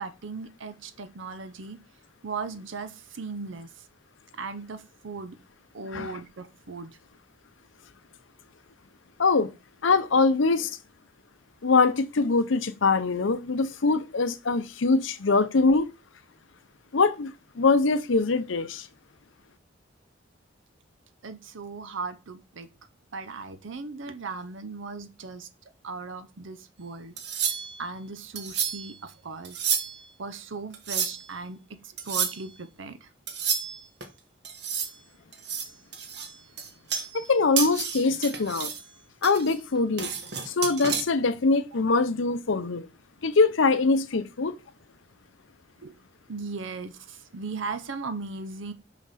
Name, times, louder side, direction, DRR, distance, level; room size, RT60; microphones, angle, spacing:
voice 1, 0.0-1.8 2.2-3.9 4.4-5.4 5.7-7.0 21.2-22.7 23.1-25.5 25.8-27.2 27.4-27.5 27.8-29.7 30.2-33.1 45.8-45.9 46.3-48.7, right 4 dB, 85° right, 0.7 m, -37 dB
voice 2, 9.2-9.5 9.8-10.8 11.6-15.9 16.9-18.9 37.1-38.7 39.2-40.1 40.5-42.9 43.2-44.5, left 4 dB, 85° left, 0.7 m, -23 dB
sound 1, 27.2-27.9 28.4-28.9 29.4-30.1 30.7-31.3 32.0-32.4 33.3-34.1 34.4-35.0 35.3-37.3 37.6-38.8 39.2-41.0, right 7 dB, 60° right, 1.2 m, -31 dB
6.0 x 6.0 x 4.1 m
head